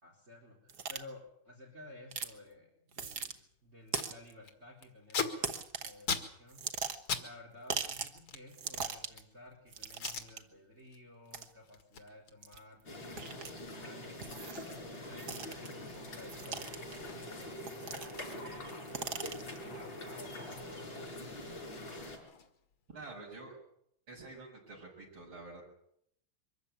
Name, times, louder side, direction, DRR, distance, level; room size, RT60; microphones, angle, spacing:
voice 1, 0.0-6.6 7.1-14.2 15.0-21.7, left 1 dB, 30° right, 1 dB, 4.3 m, -55 dB
sound 1, 0.7-1.0 2.1-2.3 2.9-3.3 3.9-4.3 5.4-6.0 6.5-7.2 7.7-8.2 8.5-9.2 9.7-10.4 11.3-11.5 12.4-12.6 13.2-13.5 14.2-14.7 15.2-15.7 16.3-17.0 17.6-18.3 18.7-19.6, right 6 dB, 50° right, 1.7 m, -39 dB
Packing tape duct tape, 3.4-3.5 3.7-4.1 4.4-7.3 7.5-9.4 9.9-10.3 10.7-11.0 11.3-17.5 17.8-17.9 18.1-20.5 20.8-22.7, left 6 dB, 80° left, 2.7 m, -43 dB
sound 2, 12.9-22.2, left 1 dB, 55° left, 6.1 m, -44 dB
voice 2, 22.9-23.5 24.1-25.6, right 3 dB, 70° right, -2 dB, 7.5 m, -48 dB
24.0 x 14.0 x 9.0 m, 0.74 s
omnidirectional pair, 2.3 m